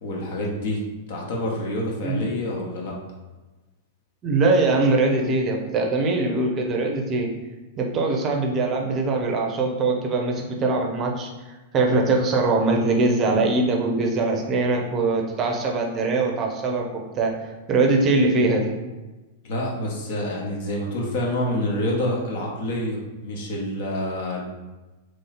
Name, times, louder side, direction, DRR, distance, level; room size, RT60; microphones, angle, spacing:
voice 1, 0.0-0.8 1.1-3.0 19.4-24.4, left 1 dB, 55° left, -2 dB, 1.0 m, -27 dB
voice 2, 4.2-7.3 7.8-18.7, right 3 dB, 30° right, 1 dB, 0.6 m, -22 dB
3.1 x 2.7 x 4.1 m, 1.1 s
figure-of-eight pair, 95°, 0 cm